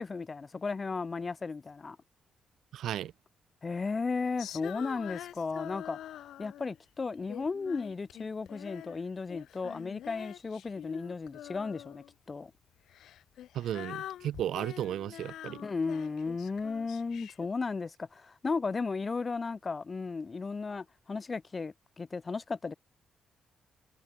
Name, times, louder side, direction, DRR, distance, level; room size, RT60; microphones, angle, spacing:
voice 1, 0.0-2.0 3.6-6.1 6.4-12.5 15.6-22.7, left 4 dB, 25° left, 1.3 m, -35 dB
voice 2, 2.7-3.1 13.5-15.6, right 11 dB, 75° right, 0.8 m, -34 dB
Female singing, 4.4-6.8 7.3-9.0 9.3-12.1 12.9-17.5, left 12 dB, 85° left, 6.9 m, -45 dB
cardioid pair, 165°, 0 cm